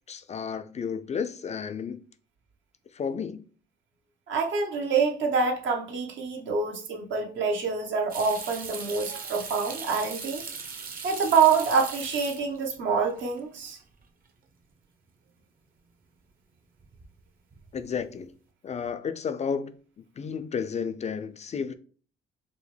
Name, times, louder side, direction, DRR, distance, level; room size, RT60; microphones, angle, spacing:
voice 1, 0.1-2.0 2.9-3.4 17.7-18.3 18.6-21.7, left 6 dB, 35° left, 0.4 m, -32 dB
voice 2, 4.3-10.4 11.0-13.8, right 5 dB, 75° right, 1.0 m, -26 dB
sound 1, 8.1-12.8 13.1-13.7 14.0-14.1 16.8-17.2 17.5-18.0, right 5 dB, 45° right, 0.8 m, -39 dB
4.9 x 2.1 x 3.3 m
cardioid pair, 90°, 20 cm